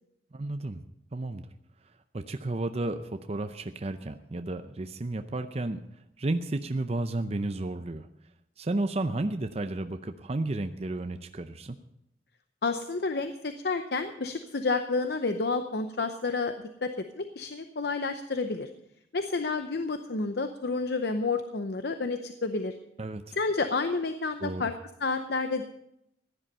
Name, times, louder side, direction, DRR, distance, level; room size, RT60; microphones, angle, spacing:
voice 1, 0.3-0.8 1.1-1.5 2.1-5.8 6.2-8.1 8.6-11.8 23.0-23.4 24.4-24.7, right 2 dB, 35° right, 8 dB, 0.6 m, -32 dB
voice 2, 12.6-16.5 16.8-16.9 17.2-18.7 19.1-22.7 23.3-24.7 25.0-25.6, left 3 dB, 65° left, 8 dB, 0.8 m, -30 dB
16.0 x 10.5 x 5.5 m, 0.79 s
head